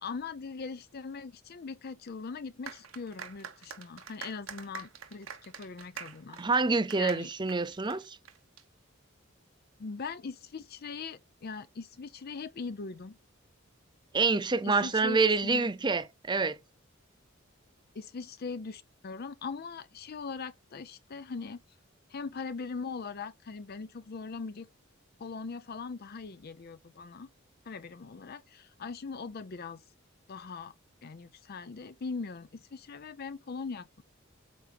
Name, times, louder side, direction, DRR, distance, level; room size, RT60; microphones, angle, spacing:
voice 1, 0.0-6.4 7.0-7.3 9.8-13.2 14.6-15.7 17.9-21.6 22.1-24.7 25.2-27.3 27.7-29.8 30.3-30.7 31.0-34.0, left 4 dB, 50° left, 0.5 m, -40 dB
sound 1, 2.7-8.6, right 7 dB, 85° right, 1.2 m, -45 dB
voice 2, 6.4-8.2 14.1-16.6, right 4 dB, 20° right, 0.6 m, -27 dB
8.5 x 2.8 x 5.3 m
head